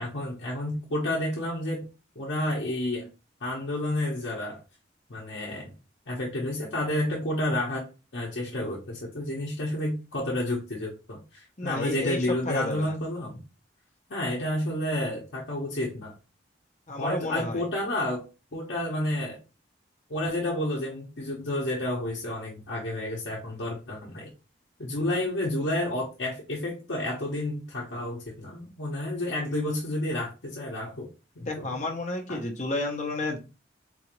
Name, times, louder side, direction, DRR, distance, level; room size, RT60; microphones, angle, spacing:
voice 1, 0.0-1.9 2.2-3.1 3.4-4.6 5.1-5.7 6.1-7.9 8.1-13.4 14.1-16.1 17.0-18.3 18.5-19.4 20.1-24.3 24.8-31.1 31.4-31.7 32.3-32.4, left 1 dB, 70° left, -4 dB, 0.8 m, -30 dB
voice 2, 11.6-12.9 16.9-17.6 31.5-33.4, left 2 dB, 40° left, 1 dB, 0.8 m, -31 dB
4.0 x 2.5 x 2.9 m, 0.30 s
head